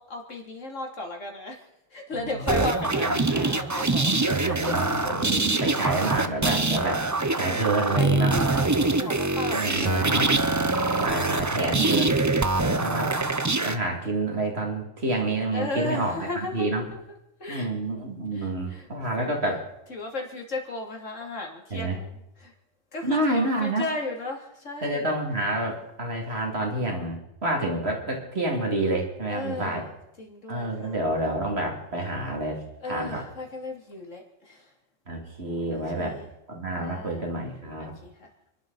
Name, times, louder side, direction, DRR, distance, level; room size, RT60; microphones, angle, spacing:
voice 1, 0.0-1.6 1.9-4.1 4.5-5.1 5.5-5.6 7.7-10.4 12.6-13.0 15.5-17.0 17.4-17.7 18.3-18.9 19.2-19.3 19.9-22.5 22.9-25.2 29.3-31.0 32.8-34.7 35.7-36.3 36.8-37.3 37.8-38.3, left 2 dB, 70° left, 1 dB, 3.3 m, -35 dB
sound 1, 2.5-13.8, right 3 dB, 20° right, 0.5 m, -24 dB
voice 2, 3.0-3.5 4.3-7.0 7.4-8.3 9.5-10.3 11.0-12.2 12.6-13.3 13.6-16.9 17.5-19.6 21.7-22.0 23.0-23.9 24.8-29.8 30.5-33.2 35.1-36.2 36.5-37.9, right 2 dB, 55° right, 1 dB, 3.0 m, -28 dB
29.5 x 12.0 x 4.1 m, 0.84 s
omnidirectional pair, 1.3 m